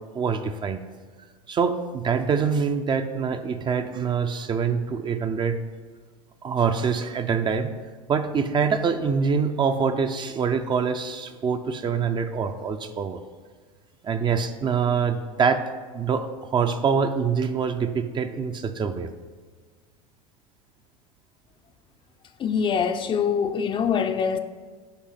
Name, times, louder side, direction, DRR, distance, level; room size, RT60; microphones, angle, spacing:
voice 1, 0.1-0.8 1.5-5.6 6.4-7.8 8.1-13.2 14.0-15.6 15.9-19.1, right 6 dB, 25° right, 0.5 m, -25 dB
voice 2, 22.4-24.4, left 7 dB, 30° left, 0.5 m, -24 dB
9.8 x 3.3 x 5.7 m
hypercardioid pair, 90°, 18 cm